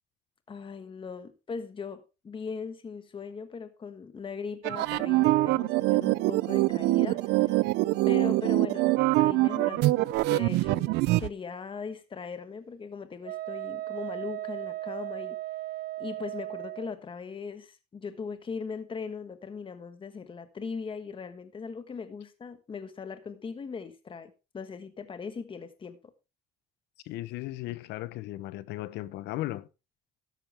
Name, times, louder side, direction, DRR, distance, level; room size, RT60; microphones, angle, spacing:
voice 1, 0.5-7.7 8.1-10.9 11.2-15.4 16.0-26.1, left 5 dB, 30° left, 1.4 m, -39 dB
sound 1, 4.6-11.3, right 19 dB, 85° right, 0.5 m, -24 dB
Wind instrument woodwind instrument, 13.2-16.9, right 15 dB, 60° right, 1.1 m, -36 dB
voice 2, 27.0-29.7, left 16 dB, 85° left, 0.9 m, -36 dB
13.0 x 11.0 x 3.5 m
cardioid pair, 110°, 17 cm